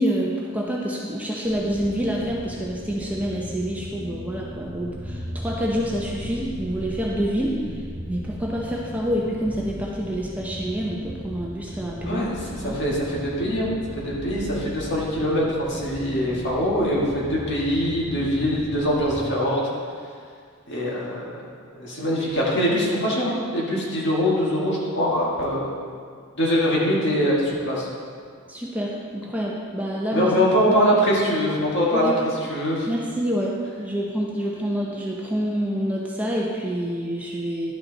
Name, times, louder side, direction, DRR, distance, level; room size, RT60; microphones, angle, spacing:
voice 1, 0.0-7.8 8.1-12.3 12.6-12.8 28.5-30.3 31.9-32.2 32.9-33.5 33.8-37.7, equal, 5° right, -3 dB, 0.7 m, -27 dB
sound 1, 1.4-19.2, equal, 30° right, 2.0 m, -37 dB
voice 2, 12.0-19.6 20.7-21.4 21.8-25.8 26.3-27.9 30.1-32.1 32.5-32.9, equal, 55° left, -5 dB, 2.0 m, -23 dB
11.0 x 6.4 x 4.1 m, 2.1 s
head